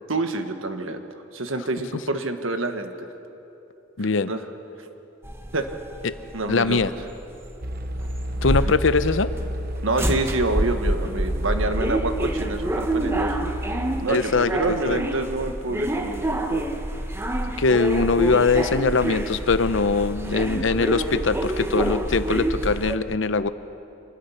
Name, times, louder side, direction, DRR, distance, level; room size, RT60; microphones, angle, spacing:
voice 1, 0.1-1.0 1.3-2.9 4.3-4.4 5.5-5.7 6.3-6.8 8.6-8.7 9.8-13.5 14.0-16.7, right 2 dB, 90° right, 7 dB, 1.4 m, -27 dB
voice 2, 4.0-4.3 6.0-6.1 6.5-6.9 8.4-9.3 14.1-15.0 17.6-23.5, left 4 dB, 70° left, 13 dB, 0.7 m, -22 dB
sound 1, 5.2-23.0, right 1 dB, 15° right, 1.1 m, -28 dB
sound 2, 7.6-14.0, equal, 50° right, 1.0 m, -31 dB
26.5 x 20.0 x 5.8 m, 2.9 s
head